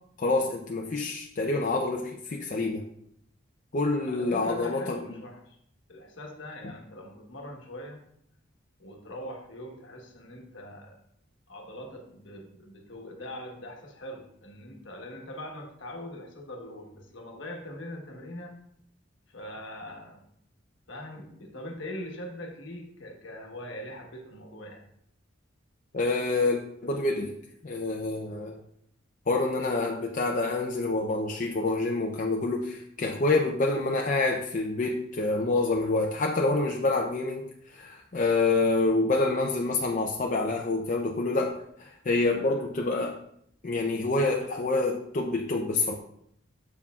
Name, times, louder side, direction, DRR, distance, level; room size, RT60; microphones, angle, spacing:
voice 1, 0.2-2.9 3.7-5.0 6.6-6.7 25.9-27.4 27.6-28.6 29.3-43.2 43.6-45.9, left 3 dB, 40° left, 0 dB, 0.5 m, -27 dB
voice 2, 4.1-5.6 5.9-8.0 8.8-11.0 11.5-18.5 19.3-20.2 20.9-24.9, left 1 dB, 65° left, 2 dB, 1.2 m, -42 dB
7.1 x 7.0 x 2.4 m, 0.71 s
head